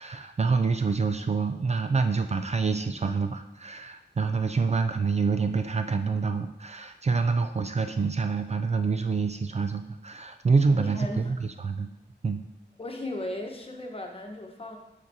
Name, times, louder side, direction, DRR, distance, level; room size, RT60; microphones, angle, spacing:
voice 1, 0.0-11.9 12.2-12.5, right 4 dB, 40° right, 8 dB, 0.4 m, -27 dB
voice 2, 10.8-11.3 12.8-14.8, left 1 dB, 30° left, 2 dB, 1.1 m, -36 dB
7.2 x 6.1 x 2.7 m, 0.89 s
wide cardioid pair, 75°, 18 cm